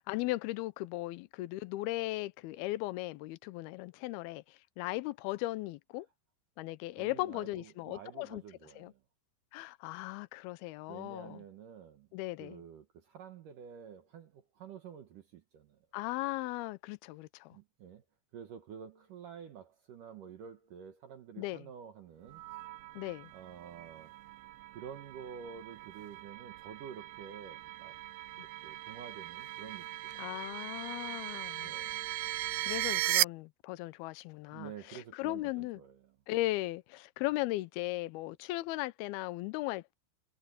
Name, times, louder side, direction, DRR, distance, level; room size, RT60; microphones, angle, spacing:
voice 1, 0.0-6.1 6.6-8.4 8.8-8.9 9.5-11.4 12.1-12.6 15.9-17.6 21.4-21.7 23.0-23.3 30.2-31.7 32.6-35.8 36.3-39.9, left 18 dB, 85° left, 2.2 m, -37 dB
voice 2, 7.0-9.0 10.9-12.1 12.4-15.8 17.5-18.0 18.3-22.4 23.3-24.1 24.7-28.0 28.4-30.2 31.6-32.1 34.5-36.2, right 8 dB, 65° right, 2.3 m, -49 dB
sound 1, 22.3-33.2, right 17 dB, 80° right, 2.4 m, -38 dB
omnidirectional pair, 5.3 m